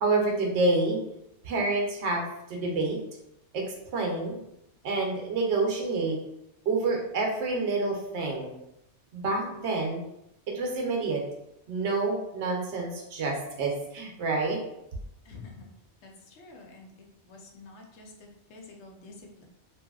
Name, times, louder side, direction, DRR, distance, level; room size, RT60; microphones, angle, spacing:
voice 1, 0.0-1.0 1.4-2.2 2.5-3.0 3.5-4.4 4.8-6.2 6.7-8.5 9.1-10.0 10.5-11.2 11.7-14.6, right 3 dB, 75° right, 0 dB, 0.9 m, -28 dB
voice 2, 15.2-15.7 16.0-16.9 17.2-19.4, left 3 dB, 80° left, 1 dB, 0.9 m, -48 dB
2.8 x 2.6 x 2.3 m, 0.83 s
omnidirectional pair, 1.2 m